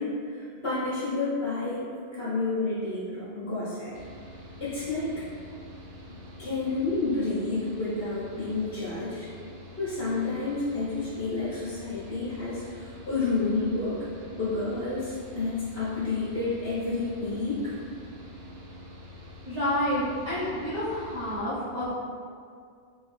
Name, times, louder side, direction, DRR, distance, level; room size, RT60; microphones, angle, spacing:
voice 1, 0.0-1.8 2.1-3.9 4.6-5.1 6.4-9.3 9.8-14.0 14.4-17.7, left 3 dB, 65° left, -11 dB, 1.2 m, -30 dB
Mechanical fan, 3.9-21.4, left 1 dB, 70° right, 0.9 m, -46 dB
voice 2, 19.4-21.9, left 1 dB, 30° right, -13 dB, 1.0 m, -29 dB
3.0 x 2.6 x 4.2 m, 2.2 s
omnidirectional pair, 1.1 m